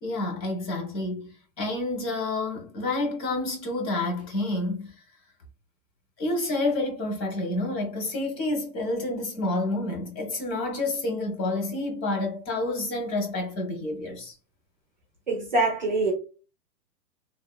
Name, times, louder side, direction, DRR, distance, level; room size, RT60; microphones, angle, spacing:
voice 1, 0.0-4.9 6.2-14.3, left 2 dB, 85° left, 1.3 m, -29 dB
voice 2, 15.3-16.1, right 2 dB, 30° right, 0.4 m, -24 dB
2.7 x 2.1 x 2.2 m
hypercardioid pair, 150°, 49 cm